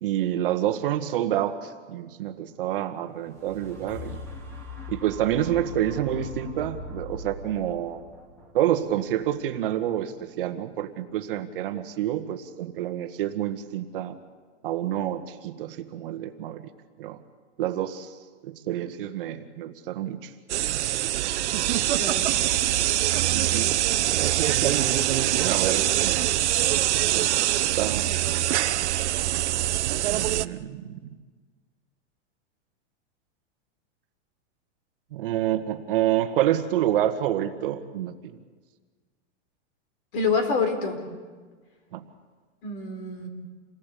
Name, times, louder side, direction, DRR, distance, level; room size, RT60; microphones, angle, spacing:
voice 1, 0.0-4.2 4.9-8.0 8.5-14.2 14.6-16.7 17.0-17.2 17.6-18.1 18.4-20.3 23.3-23.7 24.5-26.2 26.7-28.1 29.9-31.0 35.1-38.2 41.9-42.0, right 11 dB, 50° right, 7 dB, 1.5 m, -28 dB
sound 1, 3.1-11.1 11.7-11.8, left 2 dB, 5° left, 2.3 m, -41 dB
sound 2, 20.5-30.5, right 14 dB, 70° right, 0.8 m, -24 dB
voice 2, 22.0-22.3 40.1-41.0 42.6-43.3, left 4 dB, 50° left, 6 dB, 4.4 m, -26 dB
28.0 x 19.0 x 8.4 m, 1.5 s
supercardioid pair, 175°, 35 cm